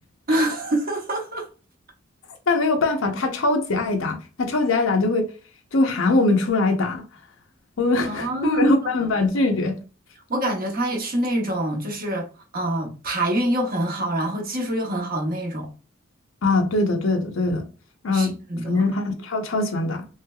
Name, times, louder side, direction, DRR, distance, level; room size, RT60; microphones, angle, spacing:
voice 1, 0.3-1.5 8.0-8.9 10.3-12.3 12.5-15.7 18.1-18.9, right 1 dB, 45° right, 0.9 m, -25 dB
voice 2, 2.5-5.2 5.7-7.0 7.8-9.8 16.4-17.6 18.0-18.4 18.6-20.1, left 2 dB, 75° left, 0.6 m, -22 dB
3.1 x 3.1 x 2.2 m
head